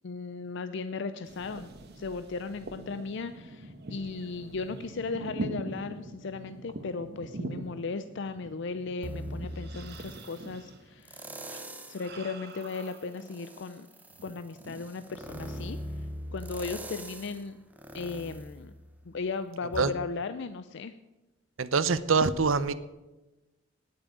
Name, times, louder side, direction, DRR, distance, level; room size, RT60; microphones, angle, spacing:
voice 1, 0.0-1.7 1.9-13.9 14.2-16.1 16.3-17.6 17.9-18.7 19.1-20.9, left 4 dB, 60° left, 11 dB, 0.5 m, -36 dB
sound 1, 1.2-13.7 14.1-14.9, right 1 dB, 55° right, 1.4 m, -43 dB
sound 2, 9.0-10.4 11.0-12.1 12.6-19.3 19.7-19.8, equal, 10° right, 1.0 m, -41 dB
voice 2, 21.6-22.7, right 4 dB, 80° right, 15 dB, 0.7 m, -24 dB
9.7 x 8.9 x 8.7 m, 1.1 s
head